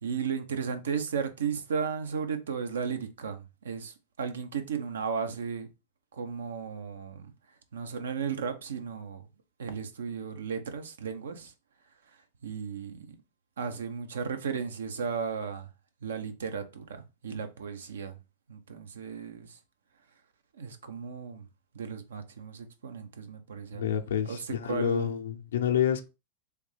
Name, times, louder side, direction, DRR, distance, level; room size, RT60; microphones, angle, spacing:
voice 1, 0.0-5.7 6.1-7.3 7.7-9.3 9.6-11.5 12.4-13.1 13.6-15.7 16.0-18.2 18.5-19.6 20.6-21.5 21.7-24.0 24.3-25.1, right 6 dB, 80° right, 0.6 m, -35 dB
voice 2, 23.7-26.1, left 9 dB, 80° left, 0.5 m, -28 dB
3.3 x 2.8 x 3.2 m
hypercardioid pair, 105°, 0 cm